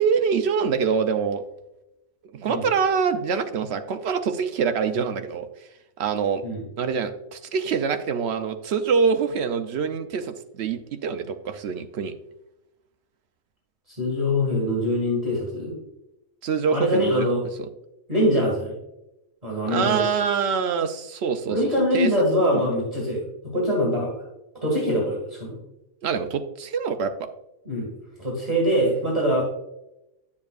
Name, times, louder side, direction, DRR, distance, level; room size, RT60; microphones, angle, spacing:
voice 1, 0.0-1.4 2.3-5.5 6.0-6.4 6.8-12.1 16.4-17.3 19.6-21.6 21.9-22.1 22.4-22.6 26.0-27.3, right 6 dB, 60° right, 8 dB, 0.7 m, -25 dB
voice 2, 13.9-15.7 16.7-17.4 18.1-18.8 19.4-20.0 21.5-24.1 24.6-25.6 27.7-27.9 28.2-29.4, equal, 25° right, -5 dB, 1.9 m, -23 dB
10.5 x 7.1 x 2.4 m, 0.92 s
omnidirectional pair, 1.5 m